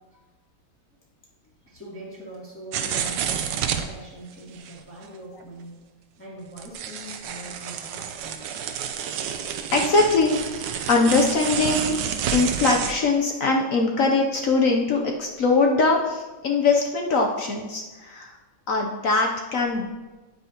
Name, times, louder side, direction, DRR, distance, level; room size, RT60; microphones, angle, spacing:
voice 1, 1.7-5.8 6.2-8.5, right 1 dB, 5° left, -7 dB, 1.9 m, -42 dB
sound 1, 2.7-3.9 4.6-4.7 5.0-5.1 5.4-5.5 6.6-12.9, right 8 dB, 90° right, 1.3 m, -29 dB
voice 2, 9.7-10.4 10.9-12.0 12.3-18.4 18.7-19.9, left 3 dB, 60° left, 1 dB, 0.9 m, -22 dB
9.5 x 8.2 x 2.9 m, 1.2 s
omnidirectional pair, 1.9 m